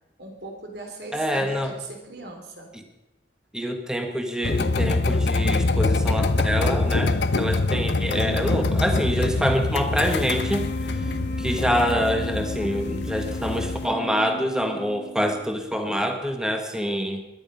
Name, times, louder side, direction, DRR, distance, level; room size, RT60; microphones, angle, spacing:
voice 1, 0.2-2.7 11.0-11.5, right 3 dB, 70° right, 3 dB, 3.4 m, -40 dB
voice 2, 1.1-1.7 2.7-2.8 3.5-10.6 11.4-17.2, equal, 5° right, 4 dB, 1.5 m, -26 dB
sound 1, 4.4-13.9, left 3 dB, 75° left, 0.7 m, -24 dB
sound 2, 10.1-15.6, left 2 dB, 55° left, 1.8 m, -36 dB
21.0 x 11.0 x 5.4 m, 0.92 s
head